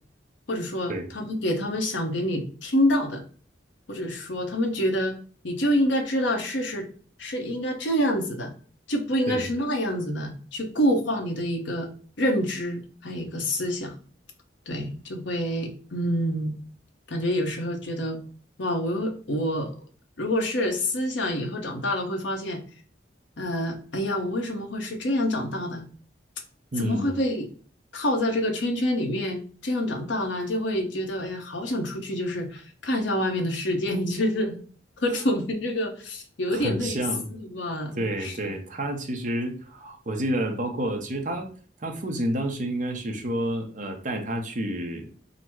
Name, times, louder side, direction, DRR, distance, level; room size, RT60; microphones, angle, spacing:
voice 1, 0.5-3.2 3.9-5.2 5.4-6.9 7.2-8.5 8.9-11.9 12.2-13.9 14.7-16.5 17.1-18.2 18.6-19.7 20.2-22.6 23.4-25.8 26.8-27.5 27.9-34.6 35.0-37.0 37.3-38.3, equal, 85° left, 3 dB, 0.9 m, -27 dB
voice 2, 26.7-27.2 36.5-37.3 37.9-41.5 41.8-45.1, right 1 dB, 45° right, 4 dB, 0.7 m, -29 dB
4.0 x 2.0 x 4.5 m, 0.41 s
head